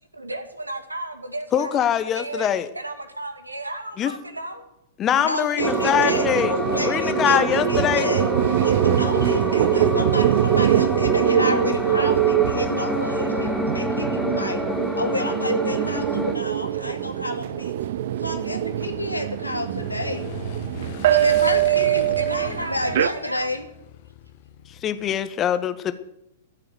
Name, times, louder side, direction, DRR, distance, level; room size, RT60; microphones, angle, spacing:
voice 1, 0.1-1.8 2.1-2.5 2.7-4.6 21.5-23.5, right 2 dB, 85° right, 8 dB, 2.1 m, -33 dB
voice 2, 1.5-2.7 4.0-4.1 5.0-8.1 24.7-25.9, left 9 dB, 25° left, 12 dB, 1.2 m, -23 dB
voice 3, 5.1-8.2 8.6-14.6 15.0-17.7 18.2-20.3 21.1-23.7, left 2 dB, 85° left, 4 dB, 2.4 m, -30 dB
sound 1, 5.6-16.4, left 1 dB, 5° left, 1.8 m, -28 dB
sound 2, 5.6-23.1, right 11 dB, 55° right, 0.6 m, -23 dB
Motorcycle / Engine, 18.1-25.2, left 12 dB, 45° left, 1.2 m, -41 dB
14.5 x 7.6 x 9.5 m, 0.84 s
figure-of-eight pair, 105°, 0 cm